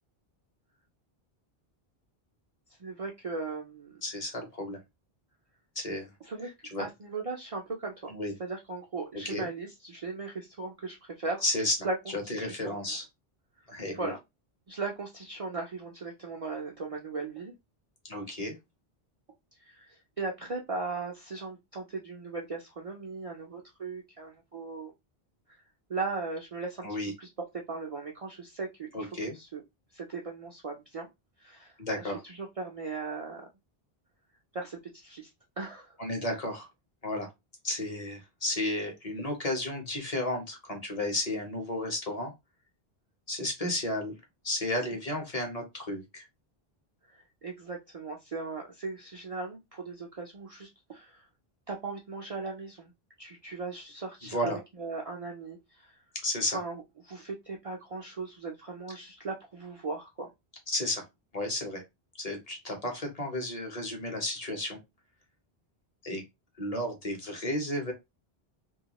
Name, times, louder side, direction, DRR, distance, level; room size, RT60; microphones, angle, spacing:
voice 1, 2.7-4.0 6.2-6.5 6.8-8.1 8.4-11.4 11.8-12.0 12.2-13.0 14.0-14.2 14.7-17.5 19.6-24.9 25.5-25.6 25.9-26.9 27.2-27.3 27.7-29.6 29.9-31.1 31.4-33.5 34.5-35.3 35.6-36.0 47.1-51.3 51.7-52.9 53.2-56.0 56.4-60.3, right 3 dB, 50° right, -1 dB, 0.4 m, -38 dB
voice 2, 4.0-4.8 5.8-6.1 6.7-6.9 8.1-8.3 9.2-9.5 11.4-11.7 12.1-13.0 13.7-14.1 18.0-18.5 26.8-27.1 28.9-29.3 31.8-32.2 36.0-36.7 37.0-37.3 37.6-42.3 43.3-44.1 44.4-46.2 54.3-54.6 56.2-56.6 60.7-61.0 61.3-61.8 62.2-64.8 66.0-66.2 66.6-67.9, left 1 dB, 40° left, 3 dB, 0.8 m, -32 dB
2.3 x 2.2 x 2.9 m, 0.21 s
omnidirectional pair, 1.0 m